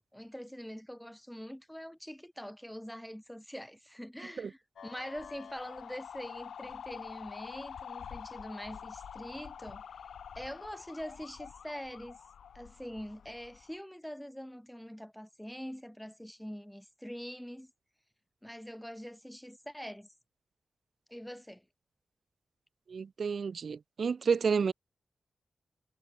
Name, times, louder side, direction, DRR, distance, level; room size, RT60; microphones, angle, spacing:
voice 1, 0.0-9.8 10.3-12.2 12.5-17.7 18.4-20.1 21.1-21.6, equal, 5° left, 4.8 m, -44 dB
sound 1, 4.8-13.8, left 8 dB, 90° left, 2.4 m, -47 dB
voice 2, 22.9-24.7, right 5 dB, 65° right, 0.4 m, -30 dB
cardioid pair, 65°, 0 cm